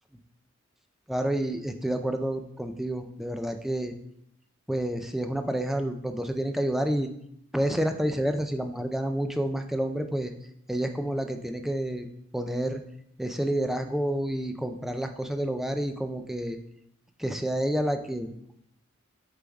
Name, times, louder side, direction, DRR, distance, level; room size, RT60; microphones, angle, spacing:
voice 1, 1.1-3.9 4.7-7.1 7.5-10.3 10.7-12.1 12.3-12.8 13.2-16.6 17.2-18.3, right 1 dB, ahead, 6 dB, 0.4 m, -29 dB
6.8 x 3.9 x 4.6 m, 0.73 s
head